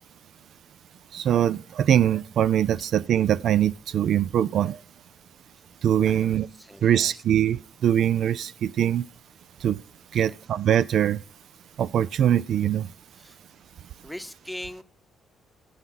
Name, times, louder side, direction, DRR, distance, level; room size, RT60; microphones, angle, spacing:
voice 1, 1.1-4.8 5.8-6.5 6.8-9.1 9.6-9.8 10.1-11.2 11.8-12.9, right 10 dB, 70° right, 0.3 m, -22 dB
voice 2, 6.1-7.1 10.1-10.3 13.2-13.4 14.0-14.8, left 1 dB, 5° left, 0.8 m, -40 dB
15.5 x 5.7 x 3.8 m
cardioid pair, 90°, 0 cm